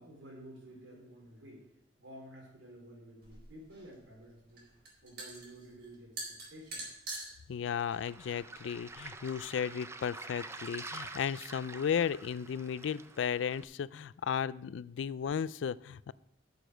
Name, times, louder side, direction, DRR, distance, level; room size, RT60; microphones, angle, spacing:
voice 1, 0.0-1.7 2.0-4.7 5.0-6.8, right 1 dB, 80° right, -1 dB, 3.8 m, -52 dB
sound 1, 3.2-9.4, right 2 dB, 55° right, 4.4 m, -46 dB
voice 2, 7.5-16.1, left 7 dB, 70° left, 19 dB, 0.3 m, -35 dB
Waves surf, 7.7-13.6, right 3 dB, 15° right, 0.5 m, -47 dB
9.2 x 6.9 x 6.2 m, 0.79 s
head